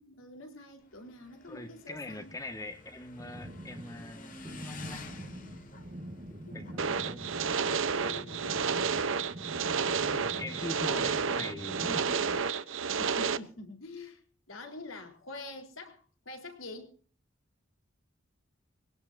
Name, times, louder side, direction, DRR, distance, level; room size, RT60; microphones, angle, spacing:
voice 1, 0.0-2.3 6.4-9.9 13.0-14.2 14.5-17.0, left 2 dB, 85° left, 4 dB, 4.1 m, -47 dB
Motorcycle / Engine, 0.8-10.0, left 3 dB, 40° left, 2.5 m, -52 dB
voice 2, 1.5-5.2 6.3-7.7 10.0-12.4, left 1 dB, 15° left, 7 dB, 1.7 m, -43 dB
sound 1, 3.2-12.0, right 1 dB, 45° right, 1.8 m, -45 dB
sound 2, 6.8-13.4, right 5 dB, 80° right, 0.9 m, -31 dB
22.5 x 17.5 x 2.7 m, 0.41 s
head